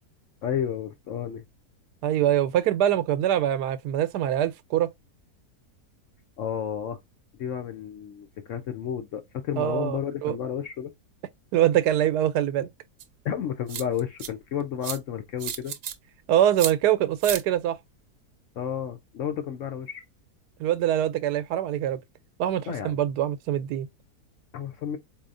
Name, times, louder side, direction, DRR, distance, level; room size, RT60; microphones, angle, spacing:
voice 1, 0.4-1.4 6.4-7.0 7.4-10.9 13.2-15.7 18.6-20.0 22.7-23.0 24.5-25.0, left 9 dB, 70° left, 0.7 m, -31 dB
voice 2, 2.0-4.9 9.6-10.4 11.5-12.7 16.3-17.8 20.6-22.0 22.4-23.9, right 11 dB, 85° right, 1.2 m, -24 dB
Telescope Open, 13.0-13.1 13.7-14.3 14.8-15.0 15.4-15.9 16.6-16.7 17.2-17.4, right 9 dB, 65° right, 0.9 m, -32 dB
4.2 x 2.7 x 2.4 m
omnidirectional pair, 1.7 m